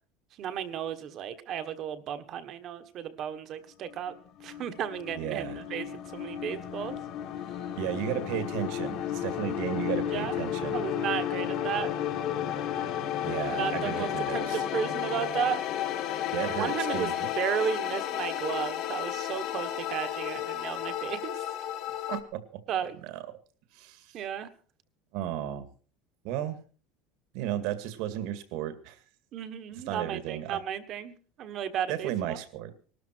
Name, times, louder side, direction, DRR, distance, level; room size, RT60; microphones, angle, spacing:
voice 1, 0.4-4.1 4.4-7.0 10.1-10.4 10.7-11.9 13.5-15.6 16.4-21.4 22.7-22.9 24.1-24.5 29.3-32.4, right 8 dB, 35° right, 11 dB, 1.4 m, -34 dB
sound 1, 3.9-22.2, left 10 dB, 40° left, 1.5 m, -33 dB
voice 2, 5.1-5.6 7.8-10.8 13.2-14.6 16.3-17.3 22.1-22.6 23.0-23.2 23.7-24.2 25.1-25.7 26.2-26.6 27.3-29.0 29.9-30.6 31.9-32.7, right 11 dB, 60° right, 11 dB, 2.0 m, -34 dB
20.0 x 13.0 x 4.5 m, 0.39 s
cardioid pair, 175°, 0 cm